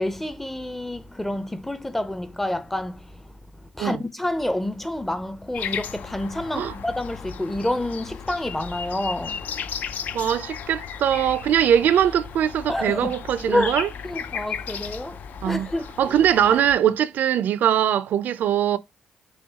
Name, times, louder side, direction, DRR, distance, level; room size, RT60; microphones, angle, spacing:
voice 1, 0.0-10.3 12.7-13.1 13.5-13.8 14.0-16.1, left 1 dB, 10° left, 0.5 m, -29 dB
sound 1, 5.5-16.7, left 7 dB, 65° left, 0.4 m, -35 dB
voice 2, 10.1-13.9 15.4-15.7 16.0-18.8, right 10 dB, 70° right, 0.4 m, -21 dB
6.3 x 2.2 x 2.8 m
cardioid pair, 85°, 3 cm